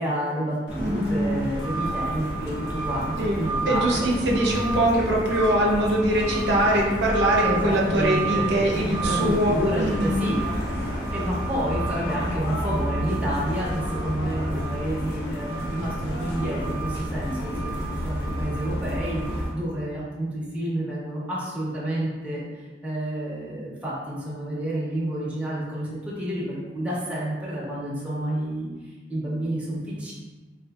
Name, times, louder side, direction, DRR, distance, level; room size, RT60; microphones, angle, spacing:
voice 1, 0.0-4.1 7.4-10.4 10.7-10.8 11.1-28.7 29.1-30.1, right 1 dB, 10° right, -7 dB, 0.7 m, -29 dB
sound 1, 0.7-19.5, right 1 dB, 70° left, 0.7 m, -29 dB
voice 2, 0.8-1.3 3.2-3.4 3.7-10.2, right 1 dB, 80° right, -3 dB, 0.6 m, -23 dB
3.7 x 2.6 x 2.3 m, 1.2 s
head